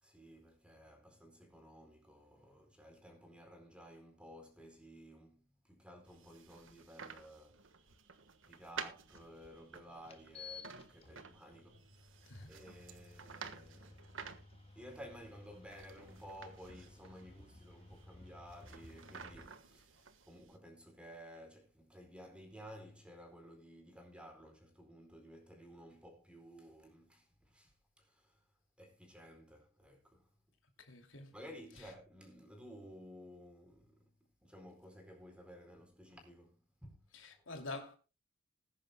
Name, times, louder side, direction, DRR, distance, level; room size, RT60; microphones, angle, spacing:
voice 1, 0.0-7.6 8.5-11.8 12.5-14.0 14.7-28.4 28.8-30.2 31.3-34.1 34.4-37.0 37.3-37.4, equal, 5° right, 4.4 m, -55 dB
sound 1, 6.1-20.6, right 6 dB, 75° right, 1.4 m, -53 dB
sound 2, 9.1-9.2 10.0-19.4, left 4 dB, 30° left, 1.7 m, -56 dB
voice 2, 30.8-31.3 31.8-31.9 37.1-38.0, left 3 dB, 85° left, 2.6 m, -47 dB
20.5 x 10.5 x 2.2 m
head